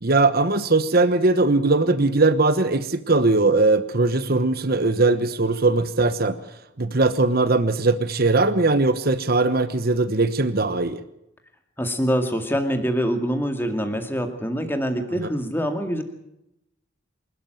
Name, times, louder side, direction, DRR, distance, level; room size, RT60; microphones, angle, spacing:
voice 1, 0.0-6.4 6.8-11.0, right 3 dB, 45° right, 11 dB, 1.1 m, -20 dB
voice 2, 11.8-16.0, equal, 10° left, 6 dB, 2.2 m, -25 dB
26.5 x 13.0 x 9.2 m, 0.83 s
head